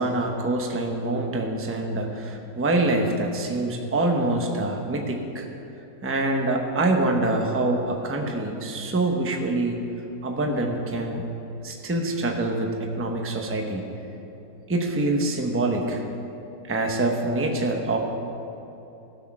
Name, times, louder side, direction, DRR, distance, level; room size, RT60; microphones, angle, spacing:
voice 1, 0.0-5.5 6.0-9.8 10.2-11.2 11.6-13.8 14.7-16.0 16.7-18.0, right 2 dB, 15° right, 2 dB, 0.6 m, -25 dB
15.0 x 6.4 x 6.0 m, 3.0 s
omnidirectional pair, 1.8 m